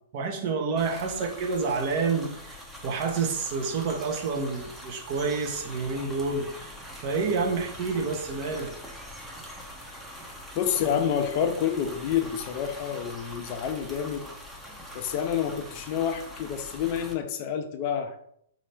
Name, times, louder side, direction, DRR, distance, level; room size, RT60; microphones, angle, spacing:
voice 1, 0.1-6.7 7.0-8.7, right 4 dB, 45° right, 2 dB, 0.8 m, -29 dB
sound 1, 0.8-17.1, equal, ahead, 0.7 m, -43 dB
voice 2, 10.5-14.3 14.9-18.2, left 8 dB, 40° left, 7 dB, 0.5 m, -28 dB
4.1 x 2.7 x 3.3 m, 0.69 s
figure-of-eight pair, 110°, 0 cm